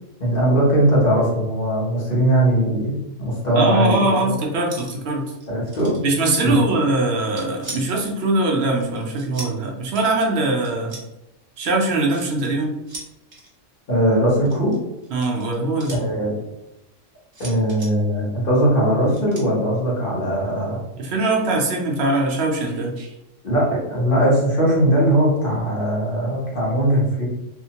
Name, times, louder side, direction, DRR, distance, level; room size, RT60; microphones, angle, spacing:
voice 1, 0.2-4.4 5.5-5.9 6.4-6.6 13.9-14.8 15.9-16.4 17.4-20.8 23.4-27.3, right 1 dB, 45° left, -6 dB, 1.1 m, -20 dB
voice 2, 3.5-5.2 6.0-11.0 11.6-12.7 15.1-16.1 21.0-23.1, right 2 dB, 65° right, -1 dB, 0.8 m, -22 dB
sound 1, 4.7-5.1 5.4-6.4 7.1-8.0 8.8-9.6 9.9-10.1 10.6-11.1 11.6-12.5 12.9-13.5 14.4-16.0 17.3-17.9 19.1-19.4, right 2 dB, 35° right, 0.5 m, -37 dB
2.8 x 2.1 x 2.8 m, 0.93 s
omnidirectional pair, 1.3 m